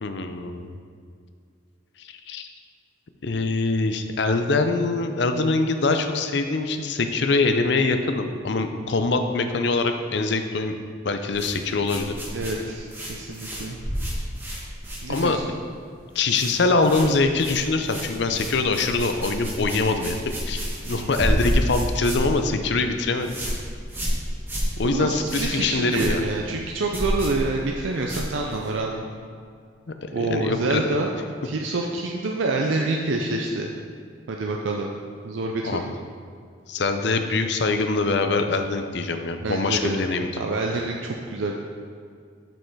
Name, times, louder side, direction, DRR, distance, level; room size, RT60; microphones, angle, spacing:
voice 1, 0.0-0.7 2.0-2.5 3.2-10.8 11.0-12.1 15.1-15.4 16.1-20.6 20.9-23.4 24.8-26.2 30.0-30.9 35.6-35.9 36.7-40.4, left 3 dB, 60° left, 7 dB, 0.5 m, -24 dB
sound 1, 11.3-15.7 15.9-16.5 16.8-28.8, equal, 10° right, 1.3 m, -30 dB
voice 2, 12.3-13.8 15.0-15.4 20.9-21.1 24.8-29.1 30.1-31.1 31.4-33.7 34.3-34.9 35.2-35.6 39.4-41.6, right 2 dB, 75° right, 1 dB, 0.5 m, -27 dB
7.4 x 5.4 x 4.6 m, 2.2 s
head